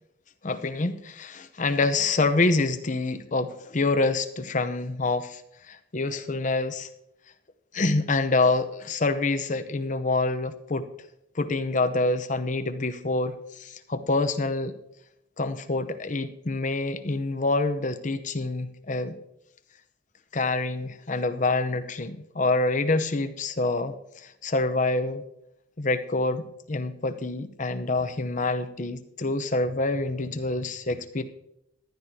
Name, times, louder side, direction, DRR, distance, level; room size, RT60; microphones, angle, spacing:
voice 1, 0.4-5.4 5.7-6.9 7.7-10.8 11.4-14.7 15.4-19.1 20.3-23.9 24.2-25.2 25.8-31.2, left 2 dB, 45° left, 9 dB, 0.8 m, -26 dB
14.5 x 11.0 x 2.8 m, 0.78 s
head